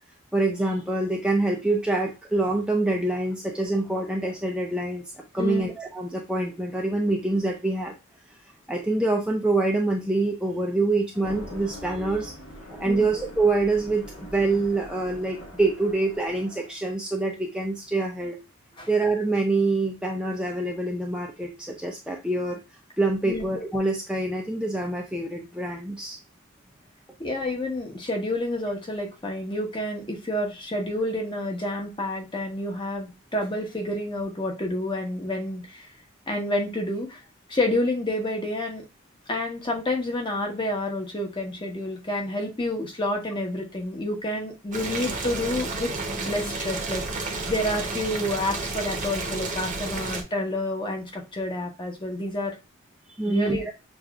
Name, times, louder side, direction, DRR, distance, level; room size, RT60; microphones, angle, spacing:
voice 1, 0.3-5.0 5.3-8.0 8.3-8.4 8.7-12.3 12.7-18.4 18.9-22.6 23.0-26.2 53.2-53.7, right 2 dB, 5° right, 0 dB, 0.4 m, -25 dB
voice 2, 5.4-5.7 12.8-13.1 18.8-18.9 23.2-23.5 27.2-35.9 36.3-37.2 37.5-38.8 39.3-45.9 46.2-52.6 53.3-53.7, left 1 dB, 25° left, 2 dB, 0.9 m, -29 dB
sound 1, 11.1-16.8, equal, 85° left, 1.2 m, -42 dB
Boiling, 44.7-50.2, right 3 dB, 40° right, 0.8 m, -31 dB
6.4 x 2.4 x 2.3 m, 0.26 s
head